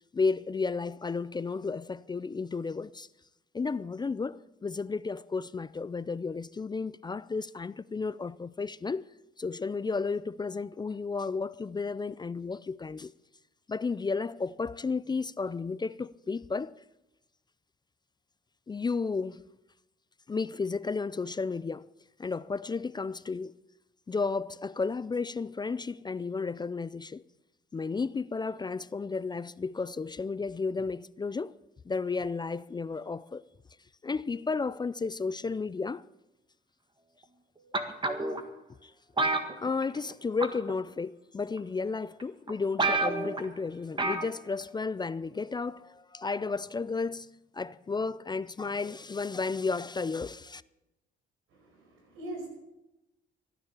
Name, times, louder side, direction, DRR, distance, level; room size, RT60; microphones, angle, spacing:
voice 1, 0.1-3.1 3.5-9.1 9.4-13.1 13.7-16.8 18.7-19.5 20.3-21.9 22.2-23.5 24.1-27.2 27.7-31.6 31.9-33.4 34.0-36.0 38.8-38.9 39.6-50.6, left 4 dB, 20° left, 0.4 m, -33 dB
sound 1, 37.7-38.4 39.2-40.1 40.4-40.7 41.6-41.7 42.2-42.3 42.5-42.6 42.8-43.4 44.0-44.3 44.6-44.7, right 2 dB, 25° right, 1.7 m, -28 dB
voice 2, 51.5-52.5, right 1 dB, 85° right, 5.6 m, -42 dB
15.0 x 9.9 x 7.1 m
cardioid pair, 90°, 20 cm